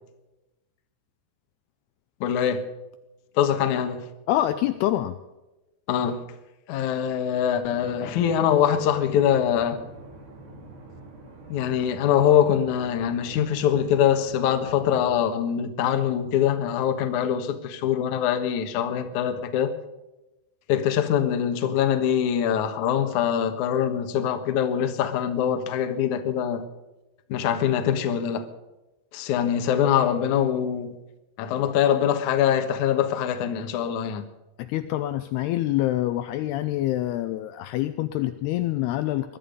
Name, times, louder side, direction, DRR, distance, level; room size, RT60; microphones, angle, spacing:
voice 1, 2.2-2.7 3.3-4.1 5.9-6.2 6.7-9.8 11.5-19.7 20.7-26.6 27.3-28.5 29.1-31.0 31.4-34.2, left 9 dB, 60° left, 2.2 m, -23 dB
voice 2, 4.3-5.2 34.6-39.4, left 14 dB, 80° left, 2.5 m, -26 dB
sound 1, 7.6-15.2, right 2 dB, 45° right, 4.5 m, -45 dB
22.0 x 12.5 x 5.3 m
omnidirectional pair, 5.0 m